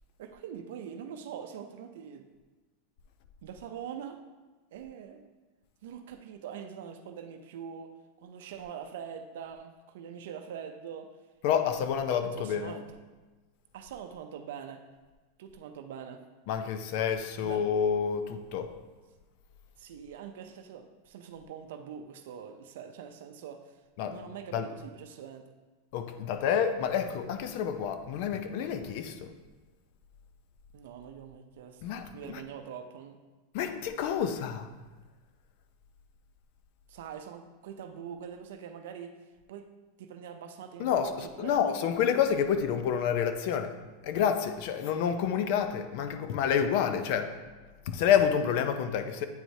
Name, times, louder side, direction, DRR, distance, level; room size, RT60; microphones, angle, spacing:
voice 1, 0.2-2.3 3.4-4.2 4.7-5.2 5.8-7.9 8.2-11.1 12.1-13.0 13.7-14.9 15.4-16.2 17.4-17.6 19.8-23.8 24.1-25.5 30.7-31.8 32.1-33.2 36.9-39.2 39.5-39.7 40.0-41.8, right 8 dB, 75° right, 7 dB, 0.5 m, -43 dB
voice 2, 11.4-12.7 16.5-18.8 24.0-24.2 24.5-24.7 25.9-29.3 31.8-32.4 33.5-34.7 40.8-47.4 47.9-49.3, left 8 dB, 60° left, 9 dB, 0.5 m, -28 dB
8.8 x 4.5 x 2.7 m, 1.2 s
supercardioid pair, 135°, 0 cm